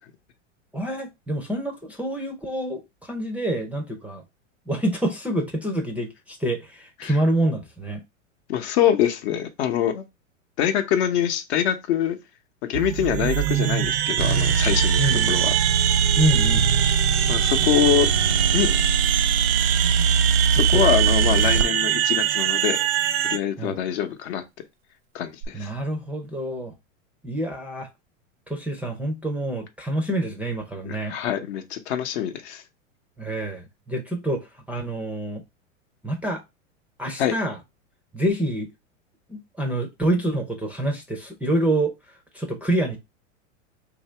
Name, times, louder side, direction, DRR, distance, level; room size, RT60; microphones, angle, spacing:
voice 1, 0.7-4.2 4.7-8.0 15.0-15.4 16.1-16.7 20.6-20.8 23.6-23.8 25.5-26.7 27.2-27.9 28.5-31.1 33.2-34.4 34.7-35.4 36.0-36.4 37.0-37.6 38.1-38.7 39.3-41.9 42.3-43.0, right 1 dB, 5° right, 0.5 m, -27 dB
voice 2, 8.5-10.0 10.6-12.2 12.7-15.0 15.3-15.5 17.3-18.1 18.5-18.7 20.5-22.9 23.2-24.4 25.1-25.7 30.8-32.6 37.2-37.3, left 9 dB, 60° left, 0.8 m, -24 dB
sound 1, 12.7-23.4, right 13 dB, 55° right, 0.5 m, -23 dB
sound 2, 14.2-21.6 25.4-25.5, right 5 dB, 80° right, 1.0 m, -22 dB
2.9 x 2.6 x 4.3 m
hypercardioid pair, 120°, 38 cm